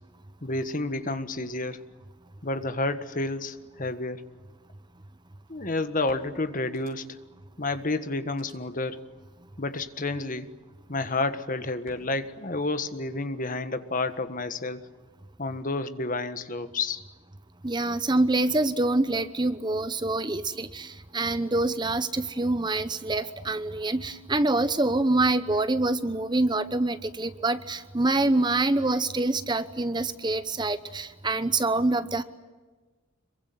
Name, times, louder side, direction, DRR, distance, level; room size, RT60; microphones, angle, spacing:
voice 1, 0.4-1.8 2.4-4.2 5.5-7.2 7.6-9.0 9.6-10.5 10.9-14.9 15.4-17.0 28.9-29.0, left 2 dB, 40° left, 10 dB, 1.5 m, -30 dB
sound 1, 5.5-5.6 6.1-7.3 7.7-7.8 8.3-8.5 9.9-10.3 11.9-12.0, right 1 dB, 70° right, 6.4 m, -55 dB
voice 2, 17.6-32.2, right 2 dB, 20° right, 12 dB, 0.9 m, -26 dB
26.5 x 23.0 x 9.4 m, 1.3 s
head